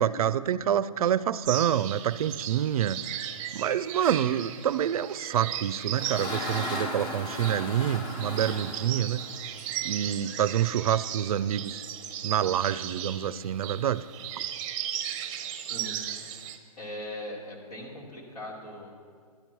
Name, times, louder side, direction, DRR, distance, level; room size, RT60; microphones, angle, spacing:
voice 1, 0.0-3.0 3.5-9.2 9.8-11.8 12.2-14.0, right 10 dB, 70° right, 17 dB, 0.4 m, -27 dB
sound 1, 1.4-16.6, right 10 dB, 25° right, 0.7 m, -37 dB
sound 2, 5.5-10.1, left 2 dB, 20° left, 0.7 m, -37 dB
voice 2, 15.7-16.0 16.8-18.9, left 1 dB, 80° left, -2 dB, 2.8 m, -40 dB
12.0 x 9.1 x 4.5 m, 2.1 s
hypercardioid pair, 135°, 19 cm